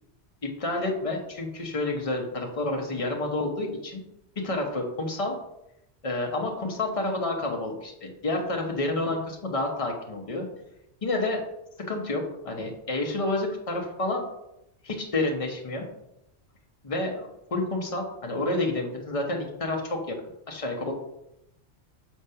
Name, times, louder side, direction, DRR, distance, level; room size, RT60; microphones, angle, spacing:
voice 1, 0.4-4.0 4.4-5.4 6.0-10.5 11.0-11.4 11.9-14.3 14.8-15.8 16.8-20.1 20.5-20.9, left 2 dB, 30° left, 1 dB, 1.1 m, -29 dB
6.6 x 3.3 x 5.6 m, 0.83 s
omnidirectional pair, 1.2 m